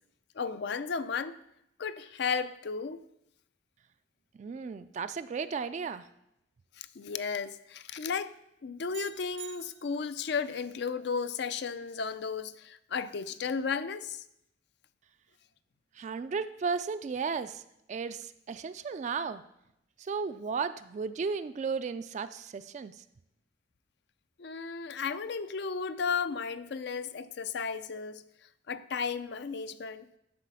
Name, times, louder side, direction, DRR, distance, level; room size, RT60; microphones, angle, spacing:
voice 1, 0.4-1.3 1.8-3.0 6.8-8.3 8.6-14.2 24.4-28.2 28.7-30.1, left 5 dB, 65° left, 0.5 m, -34 dB
voice 2, 4.4-6.1 16.0-17.6 17.9-19.4 20.0-23.0, right 5 dB, 40° right, 0.3 m, -34 dB
sound 1, 8.9-10.3, right 14 dB, 75° right, 0.6 m, -48 dB
11.5 x 4.1 x 6.9 m
head